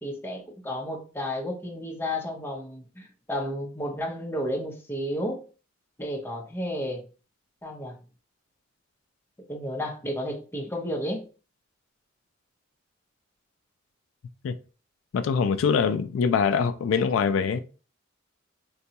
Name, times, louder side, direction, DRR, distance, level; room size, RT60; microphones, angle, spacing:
voice 1, 0.0-5.4 6.0-7.0 7.6-8.0 9.5-11.3, equal, 10° left, 0.6 m, -32 dB
voice 2, 15.1-17.6, left 6 dB, 75° left, 0.3 m, -23 dB
3.8 x 2.2 x 2.7 m
head